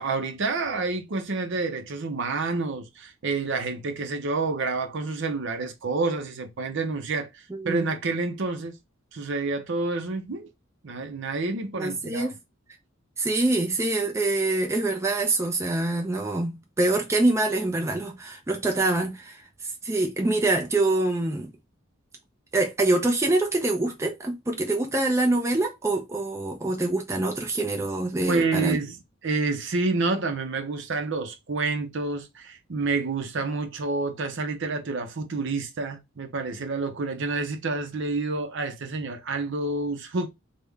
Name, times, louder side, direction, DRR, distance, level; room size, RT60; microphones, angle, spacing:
voice 1, 0.0-8.8 9.1-10.5 10.8-12.3 28.3-29.0 29.2-40.3, right 3 dB, 60° right, 0.6 m, -28 dB
voice 2, 7.5-7.8 11.8-12.3 13.2-19.4 19.8-21.5 22.5-28.8, right 2 dB, 15° right, 0.4 m, -25 dB
3.4 x 2.1 x 3.3 m
head